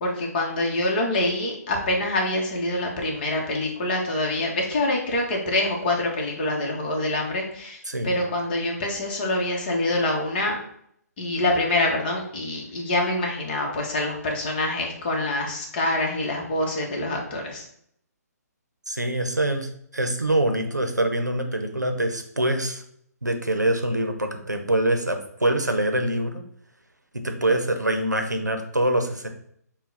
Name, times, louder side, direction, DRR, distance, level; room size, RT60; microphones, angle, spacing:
voice 1, 0.0-10.6 11.2-17.6, left 1 dB, 35° left, 0 dB, 1.0 m, -25 dB
voice 2, 7.9-8.2 18.9-22.8 23.2-26.4 27.1-29.3, right 1 dB, 85° right, 6 dB, 0.7 m, -24 dB
5.7 x 2.3 x 3.9 m, 0.69 s
figure-of-eight pair, 135°, 9 cm